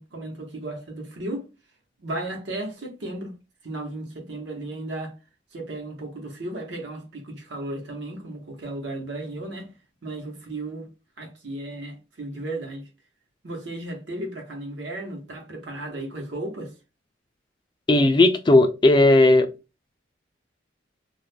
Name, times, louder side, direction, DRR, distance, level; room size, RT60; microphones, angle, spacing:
voice 1, 0.0-1.5 2.0-3.3 3.6-5.2 5.5-9.7 10.0-10.9 11.2-12.9 13.4-16.8, right 1 dB, 75° right, 0.9 m, -34 dB
voice 2, 17.9-19.5, left 2 dB, 25° left, 0.3 m, -16 dB
2.3 x 2.1 x 3.2 m
head